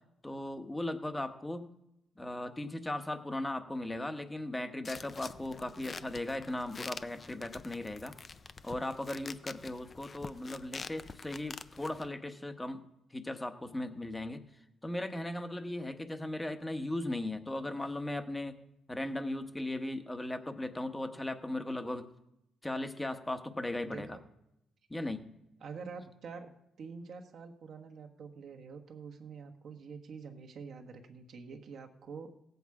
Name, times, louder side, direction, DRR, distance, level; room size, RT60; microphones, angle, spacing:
voice 1, 0.2-1.7 2.2-8.1 8.6-12.8 13.1-14.4 14.8-18.6 18.9-22.1 22.6-24.2 24.9-25.3, left 1 dB, 15° left, 9 dB, 1.1 m, -37 dB
sound 1, 4.9-12.1, left 4 dB, 35° left, 0.6 m, -47 dB
voice 2, 23.8-24.2 25.6-26.5 26.8-32.3, right 5 dB, 65° right, 3 dB, 1.3 m, -46 dB
16.0 x 8.1 x 4.8 m, 0.84 s
cardioid pair, 90°, 0 cm